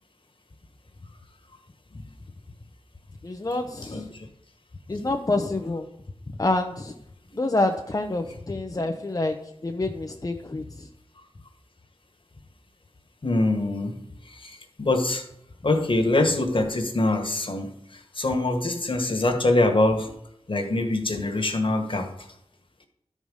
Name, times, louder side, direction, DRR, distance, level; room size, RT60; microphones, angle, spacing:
voice 1, 3.2-4.1 4.9-5.9 6.4-6.9 7.4-9.4 9.6-10.9, left 2 dB, 30° left, 3 dB, 0.7 m, -27 dB
voice 2, 3.9-4.3 13.2-14.0 14.2-15.3 15.6-20.1 20.5-22.3, left 2 dB, 50° left, 4 dB, 1.5 m, -24 dB
12.5 x 4.9 x 5.4 m, 0.77 s
wide cardioid pair, 75°, 11 cm